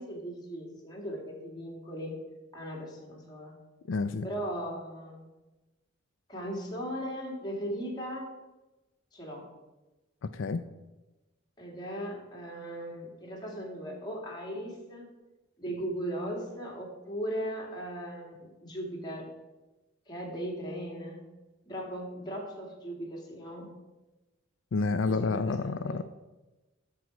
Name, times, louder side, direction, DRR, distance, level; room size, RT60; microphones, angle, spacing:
voice 1, 0.0-2.2 2.5-3.5 4.2-5.3 6.3-8.3 9.1-9.5 11.6-15.1 15.6-19.3 20.1-21.2 21.7-23.7 25.0-26.0, equal, 20° left, -2 dB, 2.3 m, -38 dB
voice 2, 3.9-4.3 10.2-10.6 24.7-26.0, left 4 dB, 70° left, 10 dB, 0.4 m, -29 dB
12.5 x 4.6 x 6.1 m, 1.1 s
head